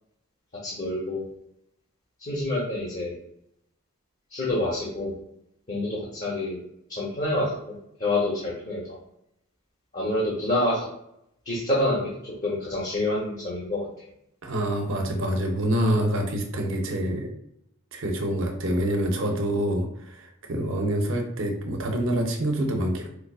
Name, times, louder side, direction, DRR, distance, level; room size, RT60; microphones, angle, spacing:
voice 1, 0.6-1.2 2.2-3.1 4.3-5.1 5.7-6.6 6.9-7.7 8.0-8.8 9.9-10.9 11.5-13.9, left 1 dB, 35° left, -6 dB, 0.8 m, -27 dB
voice 2, 14.4-17.3 17.9-23.1, right 1 dB, 65° right, 2 dB, 0.6 m, -26 dB
4.5 x 2.4 x 2.3 m, 0.75 s
head